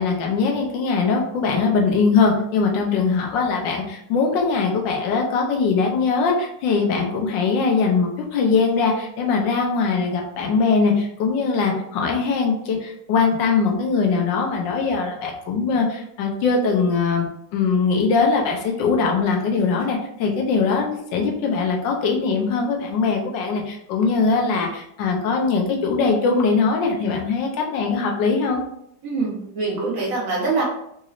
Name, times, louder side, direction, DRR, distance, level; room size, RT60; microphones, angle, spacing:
voice 1, 0.0-17.2 17.5-28.6, left 4 dB, 85° left, 1 dB, 1.4 m, -21 dB
voice 2, 29.0-30.6, right 3 dB, 55° right, -3 dB, 1.1 m, -24 dB
3.9 x 3.0 x 2.4 m, 0.76 s
omnidirectional pair, 1.9 m